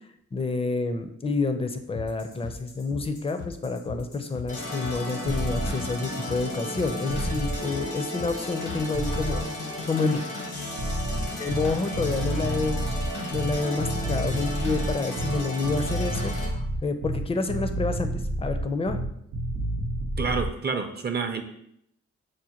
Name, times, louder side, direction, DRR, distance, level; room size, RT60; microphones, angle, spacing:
voice 1, 0.3-9.4 9.9-10.2 11.4-12.8 13.3-18.1 18.4-19.0, left 3 dB, 20° left, 7 dB, 0.5 m, -28 dB
sound 1, 1.9-9.6, left 5 dB, 70° left, 0.7 m, -41 dB
sound 2, 4.5-16.5, left 1 dB, 85° left, 1.1 m, -34 dB
sound 3, 5.2-5.7 7.1-7.6 8.9-9.4 10.8-20.5, right 1 dB, 90° right, 0.7 m, -30 dB
voice 2, 20.2-21.4, right 5 dB, 35° right, 6 dB, 0.5 m, -28 dB
6.3 x 2.1 x 2.9 m, 0.74 s
cardioid pair, 65°, 30 cm